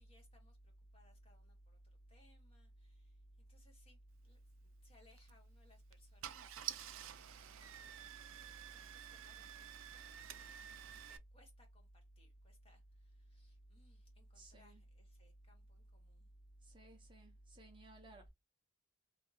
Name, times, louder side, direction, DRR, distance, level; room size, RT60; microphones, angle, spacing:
voice 1, 0.0-16.3, left 2 dB, 25° left, 1.1 m, -71 dB
Car / Engine starting, 5.1-5.3 5.9-6.0 6.2-11.2, right 11 dB, 65° right, 0.3 m, -50 dB
voice 2, 14.3-14.8 16.6-18.3, right 2 dB, 20° right, 0.6 m, -58 dB
2.7 x 2.4 x 4.0 m
head